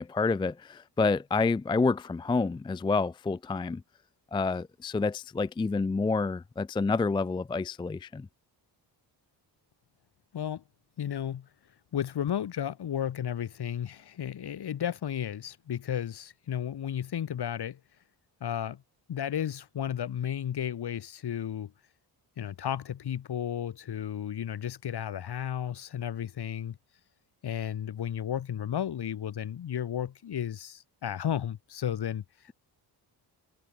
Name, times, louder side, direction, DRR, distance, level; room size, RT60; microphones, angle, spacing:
voice 1, 0.0-3.8 4.3-8.3, left 4 dB, 10° left, 0.4 m, -28 dB
voice 2, 10.3-10.6 11.0-11.5 11.9-17.8 18.4-18.8 19.1-21.7 22.4-26.8 27.4-32.2, left 9 dB, 65° left, 6.0 m, -33 dB
cardioid pair, 125°, 43 cm